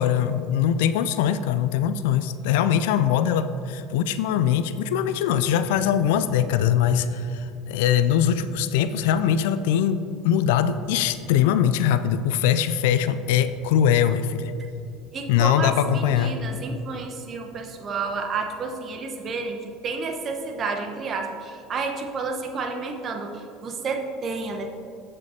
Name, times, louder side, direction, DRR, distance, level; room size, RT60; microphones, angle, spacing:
voice 1, 0.0-14.5 15.3-16.4, left 9 dB, 65° left, 12 dB, 0.3 m, -22 dB
Wind / Thunder, 5.2-12.8 13.1-20.3 20.7-20.9, right 2 dB, 80° right, 0.6 m, -47 dB
voice 2, 15.1-24.7, right 4 dB, 40° right, 4 dB, 1.0 m, -30 dB
15.0 x 5.4 x 2.7 m, 2.5 s
figure-of-eight pair, 70°, 0 cm